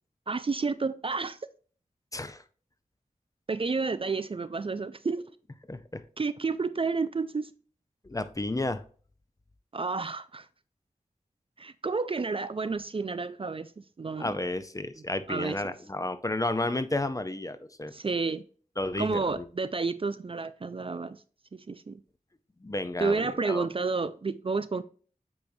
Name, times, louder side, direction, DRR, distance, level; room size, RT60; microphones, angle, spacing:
voice 1, 0.3-1.4 3.5-5.2 6.2-7.5 9.7-10.5 11.6-13.7 14.0-14.3 15.3-15.7 17.9-18.4 19.0-21.2 21.5-22.0 23.0-24.8, right 4 dB, 40° right, 0.4 m, -30 dB
voice 2, 2.1-2.4 5.7-6.0 8.0-8.8 14.2-17.9 18.8-19.5 22.6-23.7, left 2 dB, 25° left, 0.6 m, -32 dB
8.4 x 4.6 x 2.7 m
wide cardioid pair, 70°, 14 cm